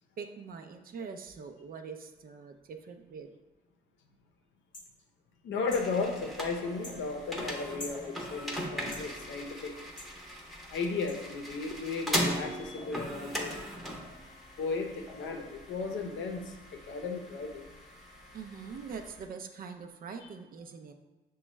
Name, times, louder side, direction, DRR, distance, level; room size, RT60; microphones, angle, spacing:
voice 1, 0.2-3.3 18.3-20.9, right 5 dB, 45° right, 6 dB, 0.4 m, -43 dB
sound 1, 4.7-4.9 5.7-5.9 6.8-7.0 7.8-8.0 8.9-9.1 10.0-10.1 11.1-11.2, left 2 dB, 40° left, 0.9 m, -44 dB
voice 2, 5.4-9.8 10.7-13.6 14.6-17.7, left 4 dB, 70° left, 3 dB, 0.6 m, -35 dB
sound 2, 5.7-19.3, equal, ahead, 0.7 m, -39 dB
6.0 x 2.3 x 3.1 m, 1.1 s
cardioid pair, 90°, 20 cm